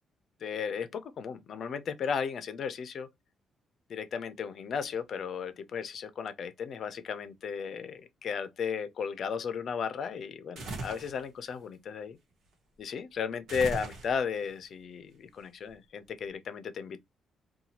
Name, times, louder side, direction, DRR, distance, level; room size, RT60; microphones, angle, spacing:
voice 1, 0.4-3.1 3.9-12.2 12.8-17.0, left 6 dB, 60° left, 0.4 m, -35 dB
sound 1, 10.6-11.2 13.5-14.4, right 2 dB, 70° right, 1.0 m, -38 dB
2.7 x 2.2 x 2.8 m
cardioid pair, 90°, 0 cm